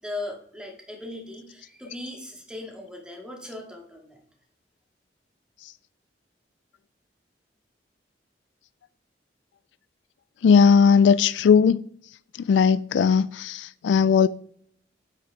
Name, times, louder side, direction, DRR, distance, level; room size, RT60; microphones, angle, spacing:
voice 1, 0.0-4.2, left 2 dB, 5° right, 2.2 m, -38 dB
voice 2, 10.4-11.9 12.4-14.3, left 6 dB, 85° left, 0.3 m, -18 dB
9.8 x 8.3 x 3.7 m
head